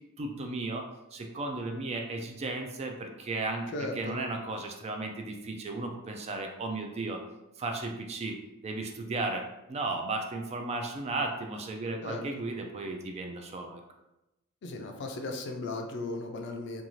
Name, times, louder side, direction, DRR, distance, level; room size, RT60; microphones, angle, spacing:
voice 1, 0.2-7.2 7.6-8.4 8.6-13.8, right 2 dB, 30° right, 4 dB, 0.3 m, -35 dB
voice 2, 3.7-4.2 12.0-12.3 14.6-16.8, left 2 dB, 55° left, 3 dB, 0.4 m, -36 dB
2.6 x 2.4 x 3.0 m, 0.94 s
head